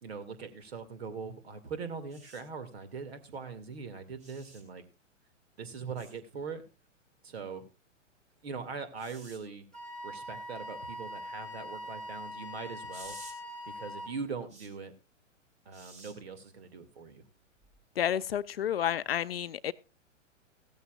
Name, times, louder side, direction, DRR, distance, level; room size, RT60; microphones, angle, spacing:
voice 1, 0.0-4.9 5.6-6.6 7.2-7.7 8.4-9.7 10.0-13.2 13.7-14.9 15.7-17.2, right 5 dB, 55° right, 11 dB, 2.5 m, -41 dB
sound 1, 2.1-2.4 4.2-4.6 6.0-6.1 9.0-9.4 12.9-13.3 14.5-14.7 15.7-16.1 17.6-17.8, right 2 dB, 20° right, 2.6 m, -51 dB
Wind instrument woodwind instrument, 9.7-14.2, left 1 dB, ahead, 1.7 m, -42 dB
voice 2, 18.0-19.7, left 10 dB, 50° left, 16 dB, 0.6 m, -30 dB
16.0 x 13.5 x 2.5 m, 0.28 s
figure-of-eight pair, 110°, 38 cm